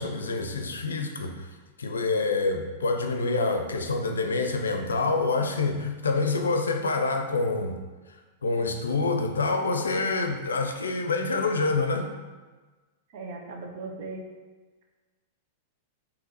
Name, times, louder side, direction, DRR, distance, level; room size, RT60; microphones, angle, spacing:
voice 1, 0.0-7.8 8.4-12.1, left 3 dB, 90° left, 5 dB, 0.5 m, -27 dB
voice 2, 13.1-14.2, right 3 dB, 60° right, 1 dB, 0.9 m, -38 dB
3.9 x 2.8 x 4.0 m, 1.3 s
hypercardioid pair, 110°, 0 cm